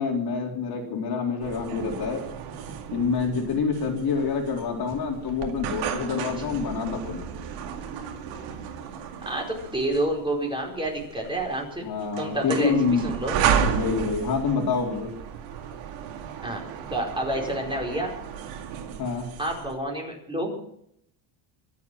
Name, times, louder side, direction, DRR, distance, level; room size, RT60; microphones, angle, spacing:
voice 1, 0.0-2.2 2.9-7.3 11.8-13.2 13.6-15.1 19.0-19.3, left 5 dB, 45° left, 0 dB, 4.0 m, -27 dB
sound 1, 1.4-19.7, right 8 dB, 85° right, 2.4 m, -33 dB
voice 2, 9.2-11.9 12.2-13.4 16.4-16.6 16.9-18.1 19.4-20.6, right 1 dB, 10° right, -1 dB, 4.7 m, -29 dB
24.5 x 8.3 x 6.3 m, 0.72 s
cardioid pair, 120°, 50 cm